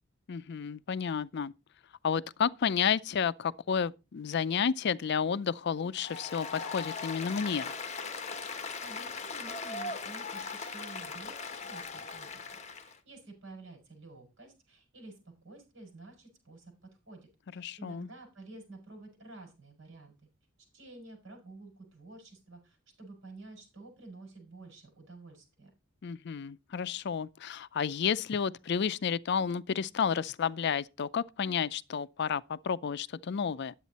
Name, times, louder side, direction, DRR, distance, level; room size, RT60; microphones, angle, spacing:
voice 1, 0.3-1.5 2.0-7.7 17.6-18.1 26.0-33.7, left 7 dB, 55° left, 0.4 m, -31 dB
Applause, 5.9-13.0, left 4 dB, 35° left, 1.1 m, -39 dB
voice 2, 8.8-11.4 11.7-16.7 17.1-20.1 20.7-25.7, right 2 dB, 65° right, 6.3 m, -50 dB
10.5 x 8.1 x 4.1 m
head